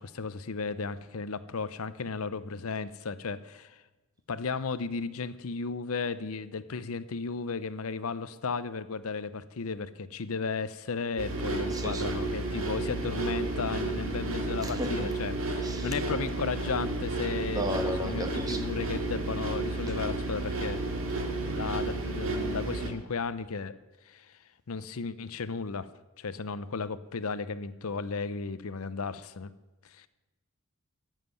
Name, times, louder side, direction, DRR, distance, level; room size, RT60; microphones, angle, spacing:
voice 1, 0.0-3.8 4.3-20.8 21.4-23.7 24.1-24.4 24.7-25.9 26.2-29.5 29.8-30.1, left 4 dB, 80° left, 15 dB, 0.7 m, -34 dB
sound 1, 11.2-22.9, right 2 dB, 65° right, 2.4 m, -32 dB
voice 2, 11.7-12.2 14.6-15.1 15.6-16.0 17.5-18.6, equal, 15° right, 6 dB, 1.4 m, -34 dB
14.5 x 7.5 x 9.7 m, 1.1 s
head